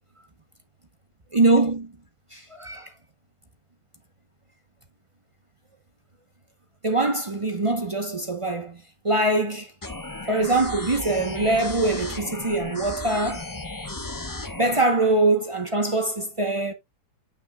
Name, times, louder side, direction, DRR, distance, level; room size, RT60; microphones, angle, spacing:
voice 1, 1.3-1.9 2.3-2.9 6.8-8.8 9.0-9.7 10.3-13.5 14.6-16.7, right 2 dB, 45° right, 0.4 m, -23 dB
sound 1, 9.8-14.8, left 2 dB, 20° left, 0.5 m, -35 dB
9.9 x 6.0 x 2.2 m
omnidirectional pair, 2.1 m